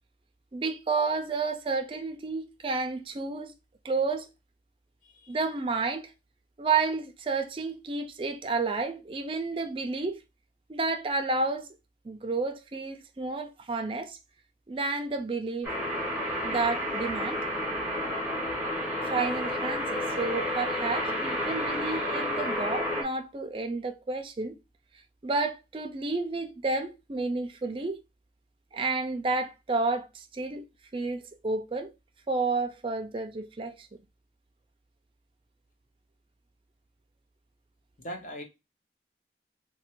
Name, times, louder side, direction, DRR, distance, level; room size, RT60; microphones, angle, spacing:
voice 1, 0.5-3.5 3.8-4.3 5.3-6.1 6.6-10.2 10.7-11.7 12.0-14.2 14.7-15.7 16.4-17.4 19.0-24.6 25.2-28.0 28.7-30.7 30.9-31.9 32.3-33.9, right 3 dB, 30° right, 0.4 m, -31 dB
voice 2, 5.0-5.4 38.0-38.4, equal, 45° left, 0.7 m, -40 dB
sound 1, 15.6-23.0, equal, 10° right, 0.8 m, -31 dB
3.1 x 2.2 x 2.9 m
head